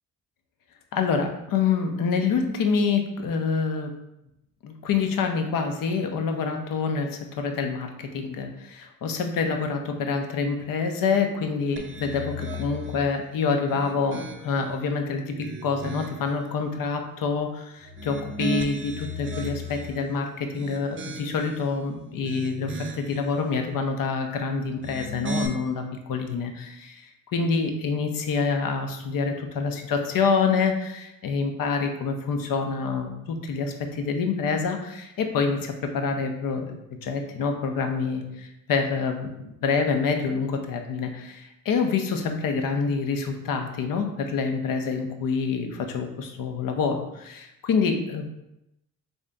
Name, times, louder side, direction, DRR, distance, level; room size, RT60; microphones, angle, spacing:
voice 1, 0.9-3.9 4.6-36.8 37.0-48.2, left 5 dB, 60° left, 4 dB, 0.7 m, -27 dB
sound 1, 11.8-13.1 13.6-14.7 15.2-16.3 17.8-20.0 20.5-21.6 22.1-23.2 24.7-25.5, equal, 35° right, 0.5 m, -35 dB
3.5 x 2.7 x 3.4 m, 0.87 s
supercardioid pair, 60°, 37 cm